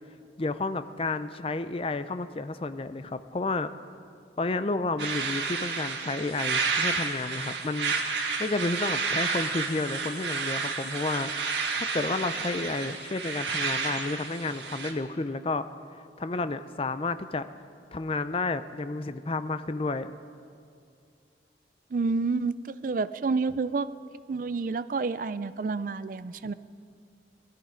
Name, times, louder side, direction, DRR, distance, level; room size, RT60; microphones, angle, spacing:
voice 1, 0.4-3.7 4.4-7.9 8.4-11.3 11.8-15.6 16.2-17.5 17.9-20.1, left 3 dB, 30° left, 12 dB, 0.5 m, -31 dB
sound 1, 5.0-14.9, right 4 dB, 80° right, 1.7 m, -31 dB
voice 2, 21.9-23.9 24.3-26.5, right 4 dB, 50° right, 15 dB, 0.4 m, -29 dB
19.5 x 12.5 x 5.1 m, 2.4 s
head